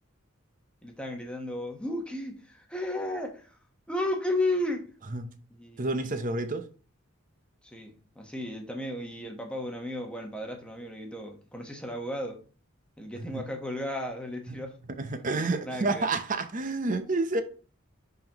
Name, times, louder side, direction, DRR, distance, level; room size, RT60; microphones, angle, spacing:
voice 1, 0.8-3.6 3.9-4.9 5.5-6.0 7.6-12.4 13.0-14.7 15.6-16.1, left 1 dB, 5° left, 1.1 m, -34 dB
voice 2, 5.8-6.7 13.3-13.4 15.0-17.4, right 3 dB, 40° right, 0.7 m, -29 dB
9.8 x 3.9 x 3.0 m
head